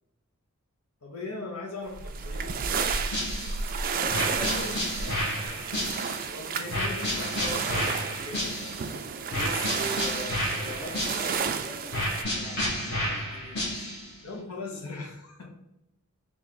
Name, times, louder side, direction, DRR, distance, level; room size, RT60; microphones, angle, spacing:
voice 1, 1.0-2.5 6.2-8.5 14.2-15.5, left 3 dB, 75° left, 1 dB, 1.1 m, -39 dB
sound 1, 1.9-12.2, right 6 dB, 40° right, 0.3 m, -32 dB
sound 2, 2.8-3.7 4.1-6.3 6.7-8.9 9.3-11.5 11.9-14.1, left 1 dB, 50° left, 1.2 m, -31 dB
voice 2, 3.9-5.7 9.3-13.8, left 1 dB, 30° left, 0 dB, 0.5 m, -42 dB
3.2 x 2.6 x 4.0 m, 0.90 s
head